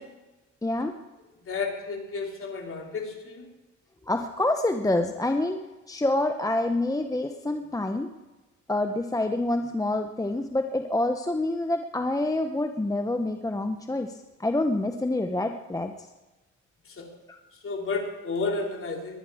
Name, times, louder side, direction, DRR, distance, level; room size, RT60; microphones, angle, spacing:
voice 1, 0.6-0.9 4.1-5.6 5.9-8.1 8.7-14.2 14.4-15.9, left 2 dB, 10° left, 6 dB, 0.9 m, -27 dB
voice 2, 1.4-3.5 16.8-17.1 17.6-19.2, left 4 dB, 45° left, 1 dB, 3.4 m, -32 dB
21.5 x 10.5 x 4.9 m, 1.1 s
cardioid pair, 90°, 30 cm